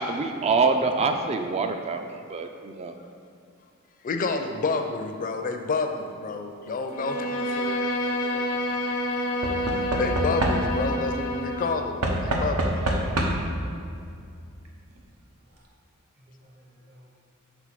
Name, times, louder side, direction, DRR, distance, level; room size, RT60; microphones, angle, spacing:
voice 1, 0.0-2.9, right 4 dB, 30° right, 6 dB, 0.3 m, -25 dB
voice 2, 4.0-7.9 8.9-9.0 9.3-9.4 9.7-12.7, left 3 dB, 40° left, 5 dB, 0.4 m, -29 dB
Bowed string instrument, 6.9-11.8, left 1 dB, 85° left, 0.8 m, -28 dB
Knock / Wood, 7.2-7.7 9.4-11.0 12.0-13.6 14.7-14.8 15.0-15.1, right 1 dB, 80° right, 0.9 m, -27 dB
voice 3, 8.0-9.6 12.5-13.1 13.8-13.9 15.5-15.7 16.2-17.1, equal, 45° right, -3 dB, 0.7 m, -51 dB
6.2 x 3.4 x 5.8 m, 2.4 s
head